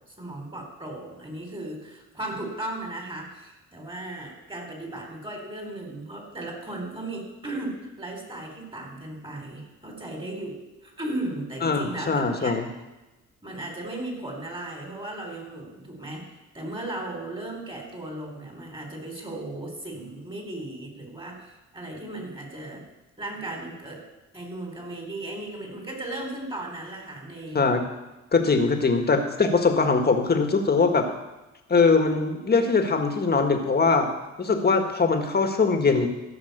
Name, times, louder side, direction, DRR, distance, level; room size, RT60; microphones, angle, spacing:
voice 1, 0.1-12.5 13.4-22.9 23.2-24.0 24.3-27.8, right 1 dB, 15° right, 1 dB, 4.0 m, -36 dB
voice 2, 11.6-12.7 27.5-27.8 28.3-31.1 31.7-34.1 34.4-36.1, left 4 dB, 30° left, 5 dB, 1.8 m, -21 dB
15.0 x 5.9 x 6.8 m, 1.0 s
cardioid pair, 90°, 30 cm